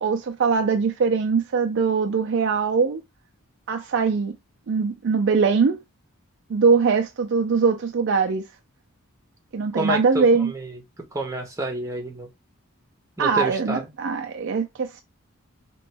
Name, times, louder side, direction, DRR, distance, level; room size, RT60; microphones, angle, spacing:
voice 1, 0.0-3.0 3.7-4.3 4.7-5.8 6.5-8.5 9.5-10.5 13.2-15.0, right 5 dB, 55° right, 0.4 m, -21 dB
voice 2, 9.7-10.8 11.1-12.3 13.2-13.9, right 1 dB, 15° right, 1.0 m, -29 dB
4.2 x 3.0 x 3.3 m
head